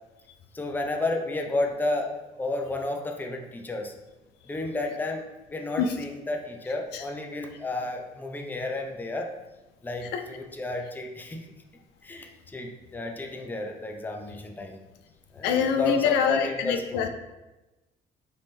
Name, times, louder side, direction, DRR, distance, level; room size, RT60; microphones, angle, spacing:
voice 1, 0.5-3.9 4.5-9.3 9.8-11.5 12.0-14.8 15.3-17.1, left 2 dB, 10° left, 2 dB, 0.5 m, -32 dB
voice 2, 15.4-17.1, left 7 dB, 85° left, 6 dB, 0.5 m, -25 dB
4.2 x 3.5 x 3.2 m, 1.1 s
cardioid pair, 110°, 17 cm